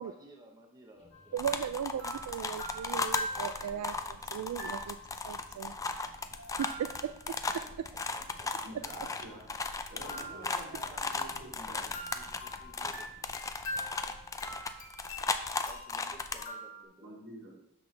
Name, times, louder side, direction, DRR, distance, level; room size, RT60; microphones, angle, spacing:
voice 1, 0.0-1.4 7.6-8.8 10.1-11.0 11.5-13.1 15.6-17.2, right 1 dB, 15° right, 0 dB, 0.9 m, -55 dB
sound 1, 0.9-14.6, equal, 30° left, 1.2 m, -61 dB
sound 2, 1.1-1.4 2.0-3.9 4.6-5.2 6.3-7.4 10.0-11.6 11.9-16.8, left 1 dB, 65° left, 1.5 m, -44 dB
voice 2, 1.3-5.0 5.2-5.7 6.6-6.9, right 9 dB, 85° right, 10 dB, 0.3 m, -37 dB
sound 3, 1.4-16.4, left 4 dB, 15° left, 0.4 m, -36 dB
voice 3, 8.6-9.4 9.9-11.9 17.0-17.5, right 1 dB, 65° right, -6 dB, 3.2 m, -48 dB
12.5 x 4.1 x 3.3 m, 0.78 s
head